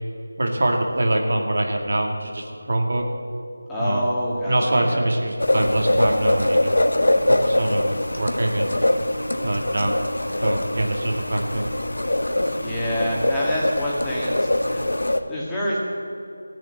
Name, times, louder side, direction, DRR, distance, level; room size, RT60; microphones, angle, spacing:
voice 1, 0.4-3.0 3.8-4.1 4.5-6.7 7.3-8.8 9.4-9.9 10.4-11.7, right 1 dB, 55° right, 2 dB, 2.1 m, -24 dB
voice 2, 3.7-5.1 12.6-15.8, equal, 5° left, -7 dB, 1.9 m, -27 dB
sound 1, 5.4-15.2, left 1 dB, 85° left, 1.1 m, -23 dB
16.0 x 7.5 x 8.8 m, 2.5 s
figure-of-eight pair, 170°, 0 cm